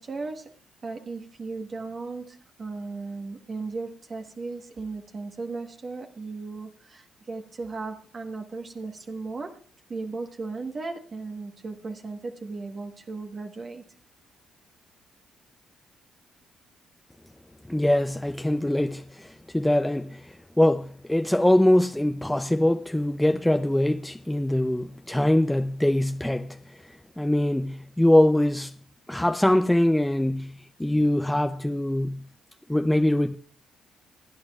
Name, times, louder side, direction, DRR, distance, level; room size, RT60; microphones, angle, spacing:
voice 1, 0.0-9.6 9.9-13.8, right 3 dB, 40° right, 1.2 m, -36 dB
voice 2, 17.7-28.8 29.1-32.3 32.7-33.3, left 1 dB, 5° left, 0.5 m, -23 dB
28.0 x 9.6 x 2.4 m
cardioid pair, 90°, 0 cm